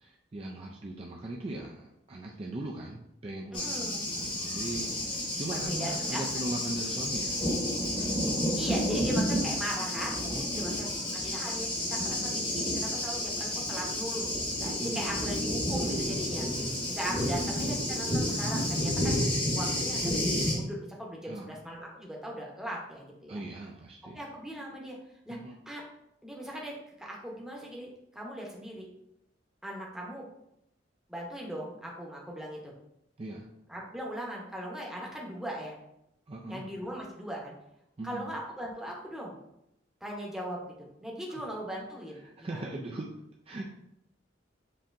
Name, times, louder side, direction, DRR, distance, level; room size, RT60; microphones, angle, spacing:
voice 1, 0.0-7.4 10.3-10.8 14.8-15.0 17.0-17.7 21.2-21.5 23.3-24.2 25.3-25.5 33.2-33.5 36.3-36.6 38.0-38.3 41.3-41.4 42.4-43.1 43.5-43.7, right 2 dB, 30° right, -1 dB, 0.4 m, -39 dB
Thunder, 3.5-20.5, left 1 dB, 25° left, 1.0 m, -30 dB
voice 2, 3.5-4.0 5.5-6.2 8.6-10.9 11.1-16.5 16.9-19.2 19.5-23.4 24.1-25.0 25.3-25.4 25.7-25.8 26.2-26.7 27.0-28.9 29.6-30.3 31.1-32.7 33.7-35.8 36.5-37.5 38.0-39.3 40.0-42.6, equal, 5° right, -3 dB, 0.8 m, -39 dB
7.3 x 2.8 x 2.5 m, 0.82 s
head